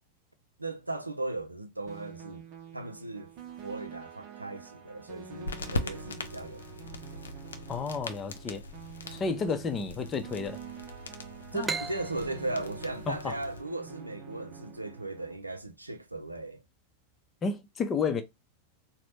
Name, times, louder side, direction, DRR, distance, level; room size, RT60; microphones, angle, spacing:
voice 1, 0.6-2.5 2.7-3.3 3.6-6.9 11.5-16.6, right 2 dB, 85° right, 0.5 m, -37 dB
sound 1, 1.9-15.4, right 6 dB, 40° right, 0.9 m, -47 dB
sound 2, 5.4-13.6, left 2 dB, 70° left, 0.5 m, -41 dB
voice 2, 7.7-8.6 9.1-10.6 11.5-11.7 13.1-13.3 17.4-18.2, left 5 dB, 25° left, 0.6 m, -31 dB
sound 3, 11.6-15.1, right 4 dB, 15° right, 0.4 m, -39 dB
4.0 x 2.2 x 3.2 m
figure-of-eight pair, 90°, 0 cm